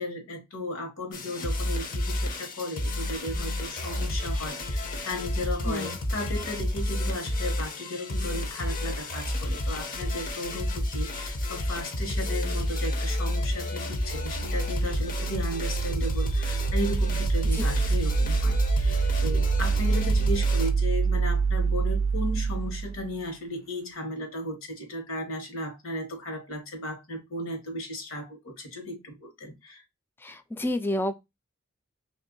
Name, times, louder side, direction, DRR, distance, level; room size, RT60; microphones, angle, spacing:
voice 1, 0.0-29.8, left 1 dB, 75° left, 1.4 m, -35 dB
sound 1, 1.1-20.7, left 1 dB, 40° left, 0.7 m, -30 dB
voice 2, 5.7-6.0 17.5-17.6 30.2-31.1, left 1 dB, 10° left, 0.3 m, -29 dB
sound 2, 14.0-23.1, right 5 dB, 65° right, 0.3 m, -26 dB
3.0 x 2.7 x 3.8 m
head